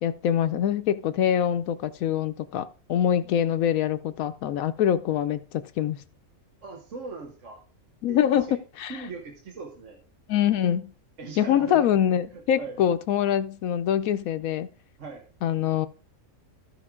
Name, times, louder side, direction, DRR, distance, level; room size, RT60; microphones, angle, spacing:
voice 1, 0.0-6.0 8.0-9.1 10.3-10.9 11.4-14.7 15.4-15.9, left 10 dB, 80° left, 1.0 m, -24 dB
voice 2, 6.6-7.6 8.1-8.6 8.9-10.0 11.2-11.9 12.3-12.8 15.0-15.2, right 4 dB, 60° right, 1.6 m, -39 dB
14.5 x 5.0 x 3.7 m
omnidirectional pair, 1.5 m